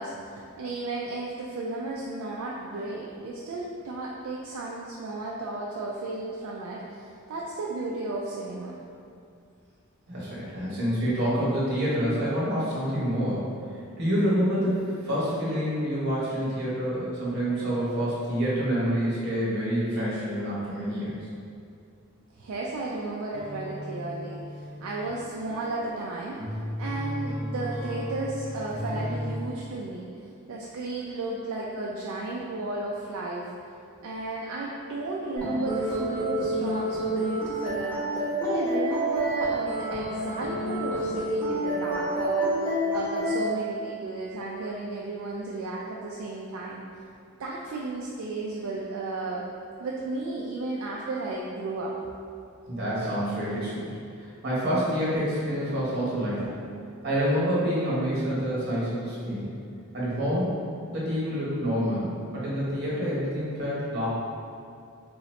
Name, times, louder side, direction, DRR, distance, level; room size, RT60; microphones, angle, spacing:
voice 1, 0.0-8.8 22.3-26.4 26.8-30.1 30.5-33.5 34.0-46.8 47.4-49.4 49.8-51.9, right 2 dB, 65° right, -4 dB, 0.4 m, -33 dB
voice 2, 10.1-13.5 14.0-21.1 52.7-53.9 54.2-56.6 57.0-59.5 59.9-60.6 60.9-64.1, equal, 50° right, -8 dB, 1.2 m, -27 dB
sound 1, 23.3-29.5, equal, 25° right, 0.7 m, -35 dB
sound 2, 35.4-43.4, right 1 dB, 5° left, 1.3 m, -28 dB
3.8 x 2.8 x 3.1 m, 2.3 s
head